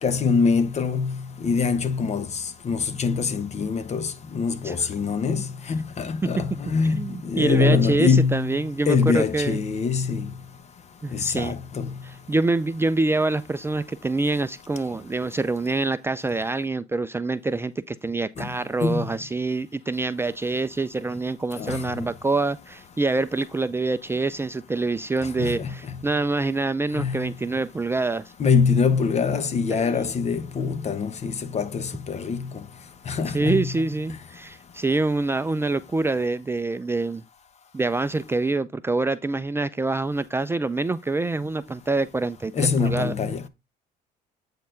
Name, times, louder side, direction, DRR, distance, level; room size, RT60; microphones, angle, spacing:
voice 1, 0.0-2.3 2.6-8.6 8.9-10.3 11.1-11.9 18.4-18.5 18.8-19.0 21.6-22.1 25.4-25.7 26.9-27.3 28.4-32.5 33.1-33.8 42.6-43.4, left 5 dB, 40° left, 1.1 m, -24 dB
voice 2, 6.8-9.6 11.0-11.5 12.0-28.2 29.7-30.1 33.3-37.2 37.7-43.1, right 3 dB, 15° right, 0.5 m, -26 dB
8.4 x 4.5 x 3.8 m
cardioid pair, 110°, 17 cm